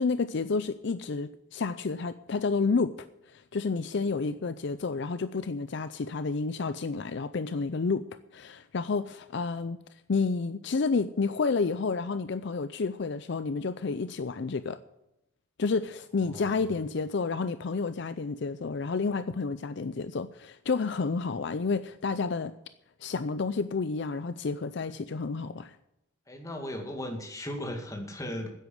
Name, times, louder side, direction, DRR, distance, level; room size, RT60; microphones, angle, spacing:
voice 1, 0.0-8.0 8.3-9.8 10.1-14.8 15.6-22.5 23.0-25.8, left 4 dB, 55° left, 12 dB, 0.5 m, -30 dB
voice 2, 16.3-16.6 26.3-28.5, left 1 dB, 15° left, 2 dB, 2.1 m, -37 dB
10.5 x 8.1 x 9.4 m, 0.88 s
head